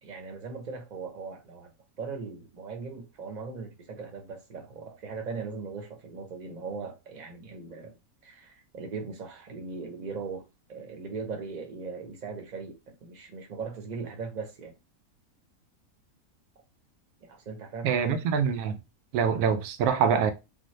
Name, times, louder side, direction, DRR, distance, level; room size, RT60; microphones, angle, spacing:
voice 1, 0.0-1.7 2.0-8.0 8.2-10.4 10.7-14.7 17.2-18.2, right 4 dB, 40° right, 0.7 m, -39 dB
voice 2, 17.8-18.8 19.1-20.3, right 7 dB, 85° right, 1.1 m, -25 dB
3.8 x 2.0 x 3.1 m
omnidirectional pair, 1.6 m